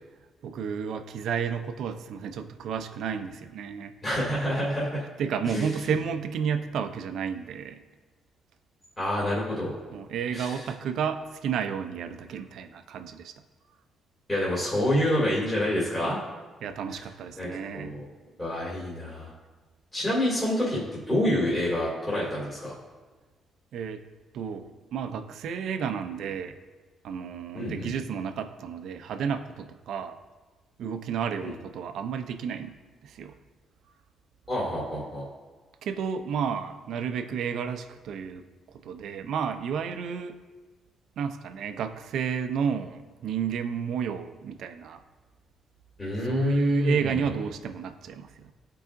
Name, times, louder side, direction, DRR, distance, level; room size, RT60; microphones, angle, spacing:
voice 1, 0.4-3.9 5.2-7.8 9.9-13.3 16.6-18.0 23.7-24.0 24.3-26.6 27.0-30.2 30.8-32.8 33.0-33.3 35.8-38.4 38.8-40.4 41.2-45.0 46.2-48.5, right 7 dB, 75° right, 9 dB, 0.5 m, -31 dB
voice 2, 4.0-5.0 5.4-5.9 9.0-9.7 10.3-10.6 14.3-16.2 16.9-17.0 17.4-18.0 18.4-19.3 19.9-22.7 27.5-27.9 31.4-31.5 34.5-35.2 46.0-47.3, left 1 dB, 20° left, -7 dB, 2.4 m, -27 dB
13.0 x 4.8 x 2.6 m, 1.3 s
cardioid pair, 90°, 0 cm